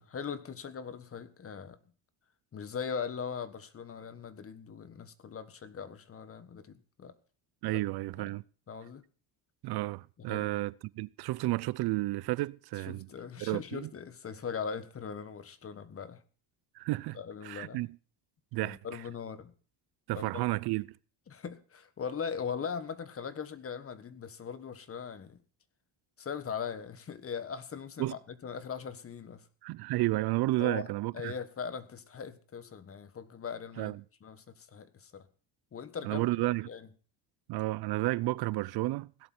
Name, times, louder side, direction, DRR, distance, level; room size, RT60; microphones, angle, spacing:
voice 1, 0.0-1.8 2.5-7.1 7.7-7.8 8.2-8.3 8.7-9.0 10.3-10.5 12.9-16.2 17.1-17.8 18.6-19.5 20.1-20.4 21.3-25.4 26.2-29.4 30.6-30.8 31.1-33.9 34.2-35.2 35.7-36.3 36.7-36.9, left 6 dB, 30° left, 1.5 m, -40 dB
voice 2, 7.6-8.4 9.6-13.1 13.4-13.9 16.8-17.2 17.4-17.9 18.5-19.0 20.1-20.9 28.0-28.1 29.6-31.3 33.8-34.0 36.0-36.7 37.5-39.1, right 20 dB, 65° right, 0.5 m, -32 dB
17.0 x 11.0 x 4.4 m
cardioid pair, 125°, 42 cm